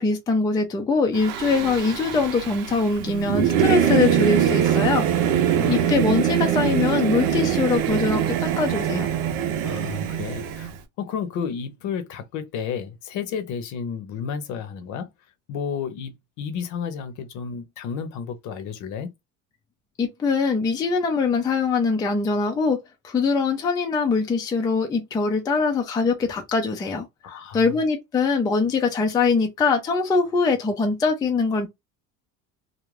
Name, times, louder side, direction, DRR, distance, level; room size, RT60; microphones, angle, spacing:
voice 1, 0.0-5.1 5.7-9.1 20.0-31.7, left 4 dB, 10° left, 0.3 m, -23 dB
Singing / Musical instrument, 1.2-10.7, right 9 dB, 90° right, 0.7 m, -23 dB
voice 2, 5.5-5.8 9.6-10.7 11.0-15.1 15.5-19.1 27.2-27.7, left 7 dB, 60° left, 0.8 m, -32 dB
2.4 x 2.1 x 3.1 m
cardioid pair, 145°, 34 cm